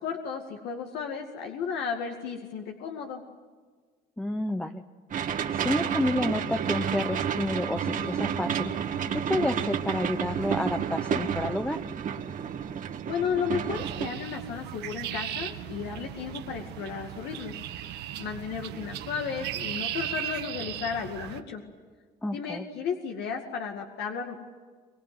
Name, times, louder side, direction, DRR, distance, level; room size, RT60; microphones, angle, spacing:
voice 1, 0.0-3.2 13.1-17.5 17.9-21.6 22.3-24.4, left 6 dB, 80° left, 3 dB, 2.3 m, -34 dB
voice 2, 4.2-4.8 5.5-8.7 9.1-11.8 22.2-22.7, left 1 dB, 5° left, 6 dB, 1.0 m, -30 dB
sound 1, 5.1-14.1, right 8 dB, 50° right, 1.7 m, -30 dB
sound 2, 13.7-21.4, right 12 dB, 85° right, 1.5 m, -37 dB
23.5 x 23.0 x 9.6 m, 1.5 s
cardioid pair, 110°, 17 cm